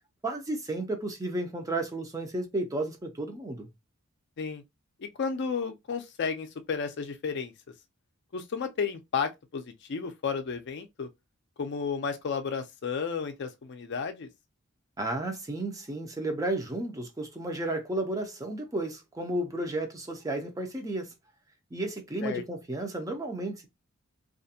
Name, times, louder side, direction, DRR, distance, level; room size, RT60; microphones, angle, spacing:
voice 1, 0.2-3.7 15.0-21.1 21.7-23.7, right 2 dB, 15° right, 0.4 m, -33 dB
voice 2, 5.0-7.5 8.3-11.1 11.6-14.3 22.2-22.4, left 5 dB, 50° left, 0.4 m, -32 dB
2.4 x 2.1 x 2.7 m
head